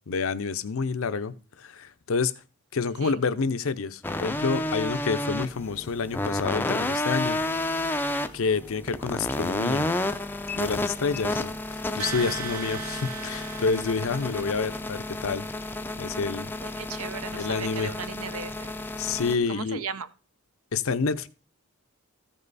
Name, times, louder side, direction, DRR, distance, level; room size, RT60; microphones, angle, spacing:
voice 1, 0.1-2.3 2.7-7.4 8.3-9.9 10.6-15.5 16.0-16.5 17.3-17.9 19.0-19.8 20.7-21.3, left 5 dB, 65° left, 0.6 m, -28 dB
sound 1, 4.0-19.4, left 2 dB, 10° left, 0.4 m, -31 dB
sound 2, 12.0-14.9, right 5 dB, 90° right, 1.1 m, -38 dB
voice 2, 16.6-18.7 19.5-20.1, right 6 dB, 70° right, 0.7 m, -37 dB
14.0 x 5.5 x 4.0 m
head